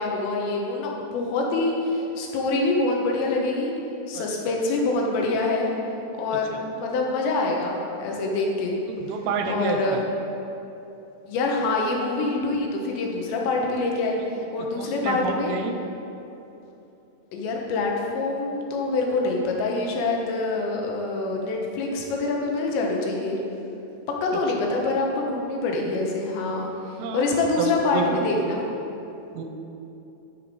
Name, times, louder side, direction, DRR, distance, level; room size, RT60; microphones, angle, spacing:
voice 1, 0.0-3.7 4.1-5.7 6.2-8.8 9.4-10.0 11.3-14.2 14.5-15.6 17.3-23.4 24.2-28.7, left 3 dB, 85° left, 0 dB, 3.4 m, -25 dB
voice 2, 8.9-10.0 14.6-15.7 24.3-24.4 27.0-27.2 27.6-28.3 29.3-29.4, right 5 dB, 90° right, 5 dB, 2.9 m, -29 dB
12.0 x 5.7 x 4.9 m, 2.9 s
omnidirectional pair, 5.0 m